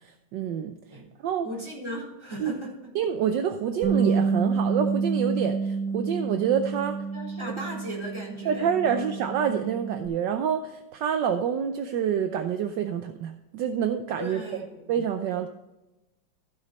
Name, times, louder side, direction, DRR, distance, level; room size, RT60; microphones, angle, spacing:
voice 1, 0.0-1.5 2.4-2.5 2.9-7.0 8.4-14.4 14.9-15.5, right 8 dB, 70° right, 7 dB, 1.2 m, -27 dB
voice 2, 1.4-2.9 7.1-9.1 14.2-14.9, equal, 15° right, -4 dB, 3.6 m, -37 dB
Bass guitar, 3.8-10.1, right 5 dB, 35° right, 1.6 m, -28 dB
14.5 x 6.4 x 4.1 m, 1.0 s
omnidirectional pair, 2.2 m